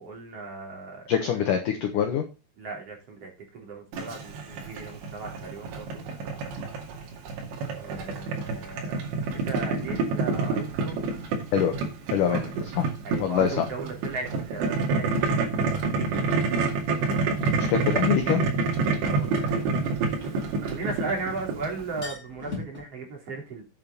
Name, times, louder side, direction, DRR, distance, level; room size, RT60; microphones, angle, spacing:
voice 1, 0.0-1.6 2.6-6.1 7.8-9.0 9.3-11.1 12.2-12.4 13.0-16.5 19.0-19.9 20.3-23.6, right 3 dB, 35° right, 1 dB, 3.9 m, -37 dB
voice 2, 1.1-2.2 11.5-11.7 12.1-12.5 12.8-12.9 13.2-13.7 17.7-18.4, left 9 dB, 70° left, 5 dB, 2.0 m, -24 dB
Boiling, 3.9-22.0, right 4 dB, 70° right, 4.3 m, -28 dB
sound 1, 17.4-17.5 19.9-21.2 21.5-21.6 21.8-22.8, left 3 dB, 15° left, 3.4 m, -40 dB
9.0 x 7.1 x 5.2 m, 0.30 s
omnidirectional pair, 5.3 m